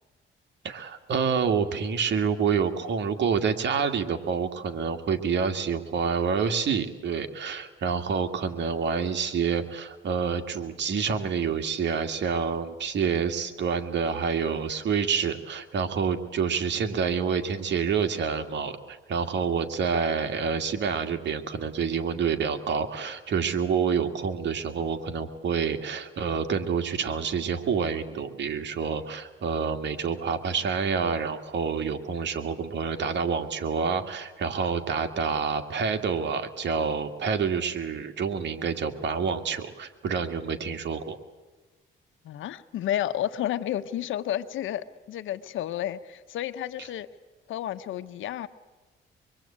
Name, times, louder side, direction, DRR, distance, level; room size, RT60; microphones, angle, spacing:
voice 1, 0.6-41.2, right 6 dB, 65° right, 2.3 m, -28 dB
voice 2, 42.2-47.1 47.5-48.5, left 11 dB, 80° left, 1.1 m, -31 dB
25.0 x 22.0 x 8.8 m
cardioid pair, 90°, 20 cm